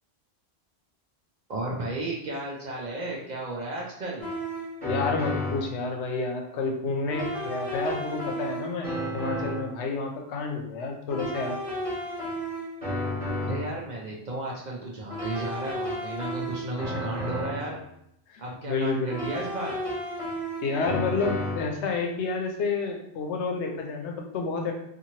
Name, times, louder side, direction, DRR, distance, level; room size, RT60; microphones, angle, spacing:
voice 1, 1.5-4.3 13.4-17.8 18.4-19.8, right 2 dB, 55° right, -3 dB, 0.5 m, -34 dB
sound 1, 4.2-5.8 7.1-9.7 11.1-13.8 15.1-17.8 19.1-21.8, equal, 30° right, 1.4 m, -32 dB
voice 2, 4.8-8.9 9.1-11.6 16.9-17.2 18.3-19.2 20.6-24.7, left 4 dB, 85° left, 2 dB, 0.9 m, -30 dB
2.9 x 2.5 x 2.7 m, 0.77 s
omnidirectional pair, 1.1 m